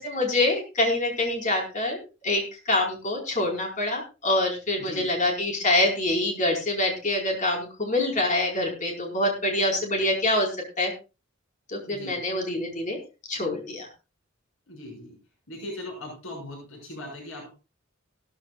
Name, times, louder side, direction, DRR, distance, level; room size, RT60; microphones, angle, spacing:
voice 1, 0.0-2.0 2.2-2.4 2.7-10.5 10.8-10.9 11.7-13.0 13.3-13.9, left 1 dB, 40° left, 2 dB, 4.8 m, -25 dB
voice 2, 11.9-12.2 14.7-15.2 15.5-17.5, left 1 dB, 85° left, 0 dB, 6.4 m, -39 dB
16.5 x 14.0 x 2.5 m, 0.30 s
head